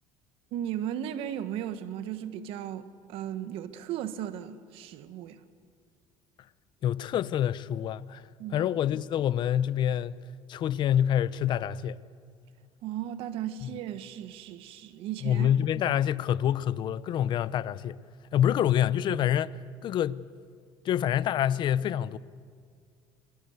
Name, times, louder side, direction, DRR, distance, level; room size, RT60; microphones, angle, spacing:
voice 1, 0.5-5.4 8.4-8.7 12.8-15.5, right 10 dB, 75° right, 1.6 m, -36 dB
voice 2, 6.8-8.2 8.5-10.2 10.5-12.0 13.6-13.7 15.2-18.0 18.3-20.2 20.8-22.2, left 10 dB, 50° left, 0.8 m, -27 dB
27.0 x 21.0 x 8.2 m
cardioid pair, 110°, 10 cm